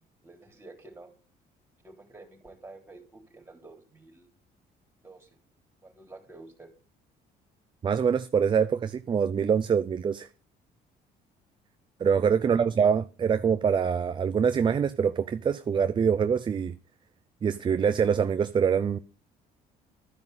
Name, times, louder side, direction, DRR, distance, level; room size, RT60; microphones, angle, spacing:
voice 1, 0.2-1.1 1.8-4.3 5.0-5.3 5.8-6.7 12.4-12.7, right 2 dB, 15° right, 3.7 m, -49 dB
voice 2, 7.8-10.3 12.0-16.8 17.4-19.0, right 7 dB, 30° right, 0.4 m, -24 dB
13.0 x 5.3 x 8.1 m
cardioid pair, 110°, 17 cm